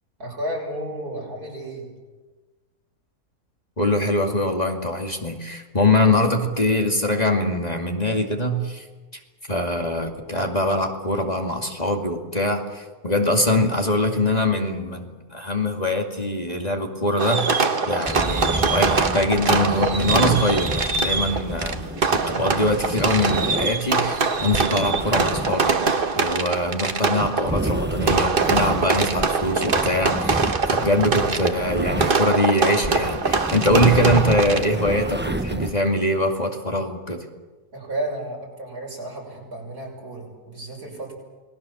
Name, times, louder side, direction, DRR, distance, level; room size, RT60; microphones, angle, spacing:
voice 1, 0.2-1.9 37.7-41.1, right 1 dB, 75° right, -1 dB, 6.9 m, -32 dB
voice 2, 3.8-8.8 9.5-25.8 26.1-37.2, left 1 dB, 25° left, 2 dB, 2.4 m, -23 dB
Fireworks, 17.2-35.0, right 4 dB, 40° right, 1.3 m, -23 dB
sound 1, 18.0-32.4 32.7-35.7, right 1 dB, 10° right, 0.7 m, -30 dB
29.0 x 20.0 x 7.2 m, 1.3 s
omnidirectional pair, 1.6 m